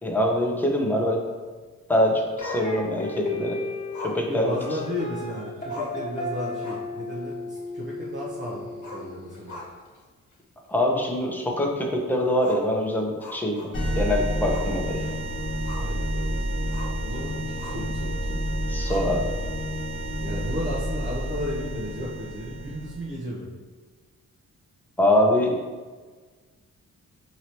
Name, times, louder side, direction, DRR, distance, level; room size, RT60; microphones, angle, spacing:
voice 1, 0.0-1.2 1.9-3.6 4.0-4.6 10.7-13.7 14.0-15.1 18.7-19.3 25.0-25.5, left 1 dB, 5° left, -1 dB, 0.8 m, -24 dB
Growling, 2.4-3.2 3.9-5.2 5.4-5.5 5.7-6.1 6.5-7.0 7.3-7.4 8.7-10.0 10.3-10.4 11.0-11.1 12.4-14.0 14.5-14.8 15.1-16.0 16.7-17.0 17.6-17.9 18.9-19.5, left 2 dB, 65° left, 1.0 m, -40 dB
sound 1, 2.4-9.5, left 2 dB, 25° left, 1.4 m, -34 dB
voice 2, 4.3-9.6 15.8-18.4 20.2-23.5, equal, 40° right, -7 dB, 0.9 m, -34 dB
sound 2, 13.7-23.1, equal, 45° left, 1.3 m, -29 dB
4.8 x 3.0 x 2.9 m, 1.4 s
cardioid pair, 70°, 31 cm